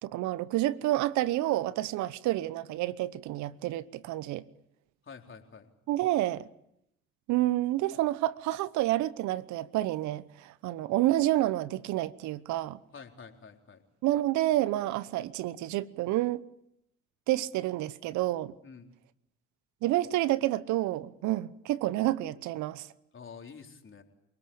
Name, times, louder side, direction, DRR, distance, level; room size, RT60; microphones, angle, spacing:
voice 1, 0.0-4.4 5.9-6.5 7.3-12.8 14.0-16.4 17.3-18.5 19.8-22.9, right 15 dB, 70° right, 1.0 m, -29 dB
voice 2, 5.1-5.7 12.9-13.8 18.6-18.9 23.1-24.0, left 5 dB, 40° left, 4.1 m, -48 dB
28.0 x 19.0 x 8.8 m
hypercardioid pair, 55°, 30 cm